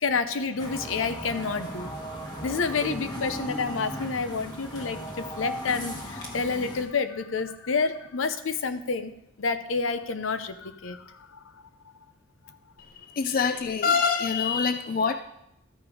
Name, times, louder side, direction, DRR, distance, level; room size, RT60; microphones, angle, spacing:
voice 1, 0.0-2.2 2.4-9.1 9.4-11.4, left 4 dB, 80° left, 11 dB, 0.7 m, -29 dB
sound 1, 0.6-6.8, equal, 20° left, 1.2 m, -36 dB
voice 2, 13.1-15.1, left 5 dB, 45° left, 8 dB, 0.3 m, -24 dB
13.0 x 5.1 x 4.8 m, 0.81 s
head